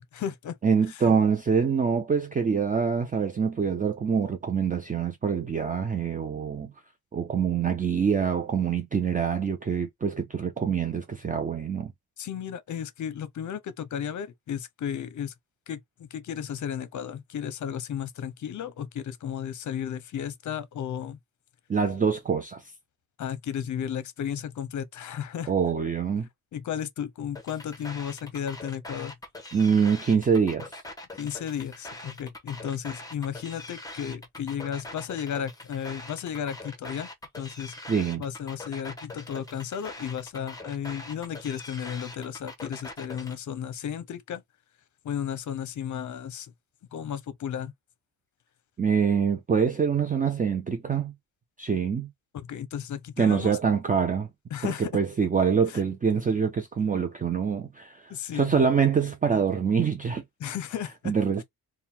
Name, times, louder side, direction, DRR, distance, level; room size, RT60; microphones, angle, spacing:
voice 1, 0.0-0.6 1.0-1.1 12.2-15.3 15.7-21.2 23.2-25.5 26.5-29.1 31.2-37.1 37.4-37.7 38.2-44.4 45.0-46.5 46.9-47.7 52.3-53.6 54.5-54.9 55.7-55.8 58.1-58.6 60.4-61.1, left 9 dB, 50° left, 0.7 m, -34 dB
voice 2, 0.6-6.7 7.1-11.9 21.7-22.6 25.5-26.3 29.5-30.8 37.9-38.2 48.8-51.1 51.6-52.1 53.2-54.3 54.6-60.2 61.1-61.4, right 6 dB, 20° right, 0.4 m, -25 dB
sound 1, 27.3-43.3, left 2 dB, 10° left, 0.9 m, -43 dB
3.6 x 2.2 x 4.3 m
wide cardioid pair, 155°, 38 cm